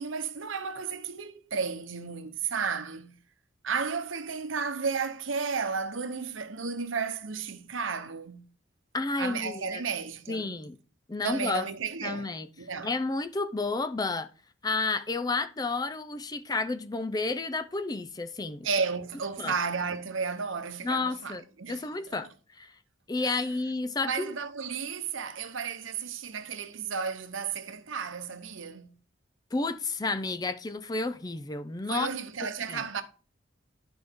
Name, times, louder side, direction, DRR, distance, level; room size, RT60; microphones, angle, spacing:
voice 1, 0.0-3.2 3.6-8.5 9.2-10.6 11.2-13.0 18.6-22.2 23.2-23.5 24.0-29.0 31.9-33.0, right 5 dB, 80° right, 0.9 m, -33 dB
voice 2, 8.9-9.6 10.3-10.8 11.1-11.6 12.0-12.5 12.8-14.3 14.6-18.7 19.4-19.5 20.8-22.3 22.6-22.7 23.1-24.3 29.5-32.1 32.4-32.8, left 3 dB, 20° left, 0.4 m, -31 dB
11.0 x 5.2 x 3.6 m
head